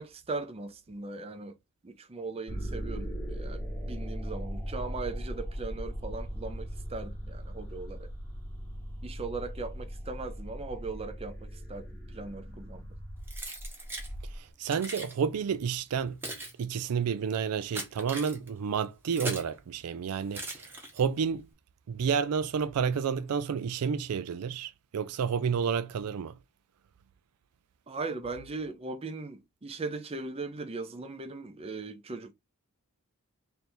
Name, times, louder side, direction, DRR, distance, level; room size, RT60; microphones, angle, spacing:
voice 1, 0.0-1.6 1.8-8.1 9.0-12.9 27.9-32.3, right 3 dB, 25° right, 0.6 m, -39 dB
sound 1, 2.5-14.4, equal, 10° left, 1.2 m, -39 dB
Keys jangling, 13.3-14.1 14.7-15.1 15.9-19.6 20.3-21.2, right 1 dB, 10° right, 1.0 m, -40 dB
voice 2, 14.4-16.2 16.6-20.6 20.9-21.5 21.9-26.3, right 6 dB, 90° right, 0.4 m, -30 dB
3.4 x 2.6 x 4.3 m
head